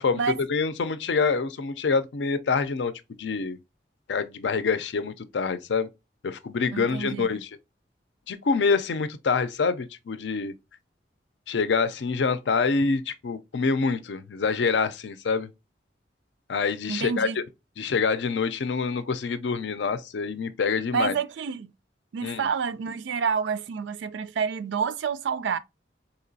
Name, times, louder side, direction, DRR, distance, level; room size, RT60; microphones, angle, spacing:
voice 1, 0.0-3.6 4.1-5.9 6.2-7.5 8.3-10.5 11.5-15.5 16.5-17.4 17.8-21.1 22.2-22.5, left 5 dB, 80° left, 0.5 m, -26 dB
voice 2, 6.7-7.4 16.9-17.4 20.9-21.7 22.1-25.6, right 6 dB, 90° right, 0.4 m, -28 dB
4.2 x 2.9 x 2.7 m
head